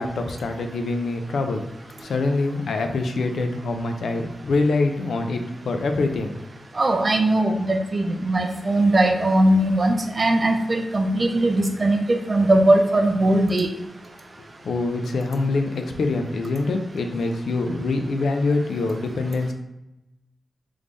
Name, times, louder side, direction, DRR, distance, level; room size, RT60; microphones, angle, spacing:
voice 1, 0.0-1.6 2.0-6.3 14.6-19.5, left 3 dB, 85° left, 5 dB, 0.4 m, -24 dB
voice 2, 6.8-12.0 12.3-13.7, right 1 dB, 40° right, 4 dB, 0.5 m, -19 dB
3.5 x 3.2 x 2.6 m, 0.93 s
wide cardioid pair, 80°, 0 cm